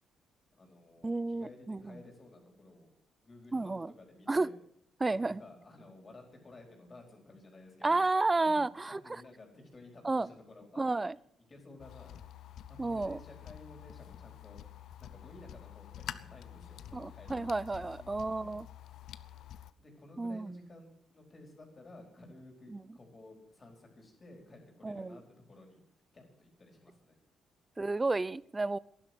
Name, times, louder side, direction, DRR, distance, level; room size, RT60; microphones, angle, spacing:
voice 1, 0.5-2.9 3.2-4.5 5.1-8.0 8.4-10.8 11.5-12.1 12.7-14.6 15.0-18.6 19.8-25.2 25.5-25.8 26.1-27.2, left 2 dB, 35° left, 4.5 m, -54 dB
voice 2, 1.0-2.0 3.5-3.9 4.3-4.5 5.0-5.4 7.8-9.0 10.0-10.3 10.8-11.2 12.8-13.2 16.9-18.7 20.2-20.5 22.7-22.8 24.8-25.2 27.8-28.8, right 3 dB, 20° right, 0.5 m, -31 dB
sound 1, 11.8-19.7, left 11 dB, 75° left, 0.7 m, -48 dB
12.0 x 11.0 x 8.1 m
cardioid pair, 90°, 0 cm